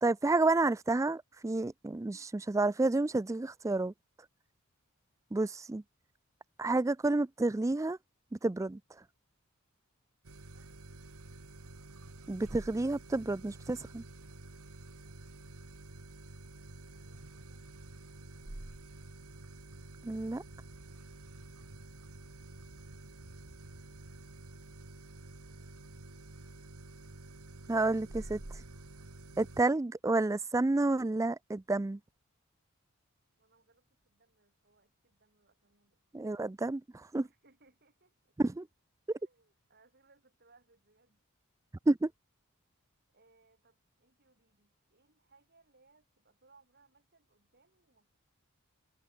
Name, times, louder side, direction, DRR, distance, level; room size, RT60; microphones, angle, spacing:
voice 1, 0.0-3.9 5.3-5.8 6.6-8.0 8.3-8.8 12.3-14.0 20.0-20.4 27.7-28.4 29.4-32.0 36.1-37.3 38.4-38.7 41.9-42.1, right 2 dB, 15° right, 0.3 m, -30 dB
sound 1, 10.2-29.6, right 2 dB, 90° right, 2.1 m, -49 dB
voice 2, 10.4-10.8 16.9-17.6 18.2-18.5 25.1-25.8 33.4-36.3 37.2-38.4 39.1-41.2 43.1-48.2, right 3 dB, 45° right, 6.6 m, -69 dB
head